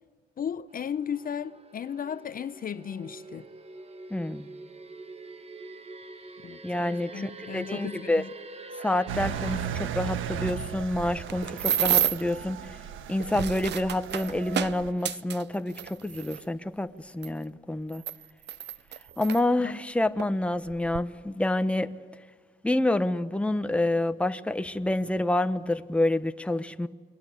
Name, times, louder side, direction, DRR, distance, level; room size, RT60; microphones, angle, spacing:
voice 1, 0.4-3.5 6.4-8.3 19.6-19.7, left 8 dB, 45° left, 0.7 m, -35 dB
sound 1, 0.7-9.6, right 3 dB, 30° right, 1.5 m, -45 dB
voice 2, 4.1-4.5 6.6-8.2 8.8-12.6 13.1-18.0 19.2-21.9 22.6-26.9, left 1 dB, 5° left, 1.1 m, -28 dB
Engine, 9.1-14.9, right 8 dB, 85° right, 1.3 m, -36 dB
sound 2, 11.0-12.3 13.1-16.4 17.2-17.3 17.9-19.4 20.2-20.3 20.7-21.0, right 10 dB, 60° right, 0.7 m, -30 dB
29.0 x 22.5 x 8.3 m
cardioid pair, 90°, 20 cm